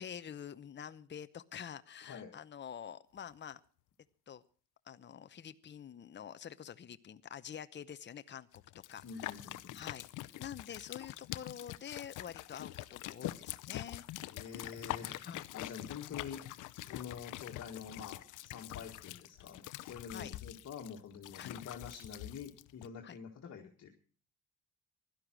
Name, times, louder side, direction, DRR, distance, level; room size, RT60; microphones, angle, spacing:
voice 1, 0.0-3.6 4.3-4.4 4.9-8.6 8.9-9.4 9.7-14.0 15.2-15.4 20.1-20.3 21.4-21.5 23.0-23.1, left 8 dB, 35° left, 12 dB, 0.8 m, -47 dB
sound 1, 8.6-22.9, left 16 dB, 85° left, 0.7 m, -45 dB
voice 2, 9.0-9.8 14.3-23.9, left 6 dB, 55° left, 2 dB, 2.0 m, -47 dB
16.0 x 12.0 x 6.2 m, 0.43 s
cardioid pair, 90°, 30 cm